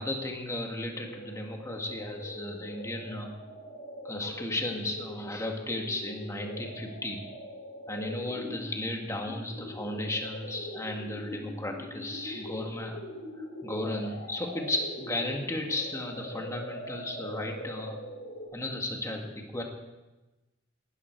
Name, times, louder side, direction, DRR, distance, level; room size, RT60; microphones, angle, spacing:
voice 1, 0.0-3.3 4.0-7.3 7.9-13.0 13.6-18.0 18.5-19.6, left 1 dB, 15° left, 2 dB, 2.0 m, -34 dB
sound 1, 0.9-18.5, equal, 70° left, 5.1 m, -43 dB
18.0 x 13.5 x 4.7 m, 1.1 s
head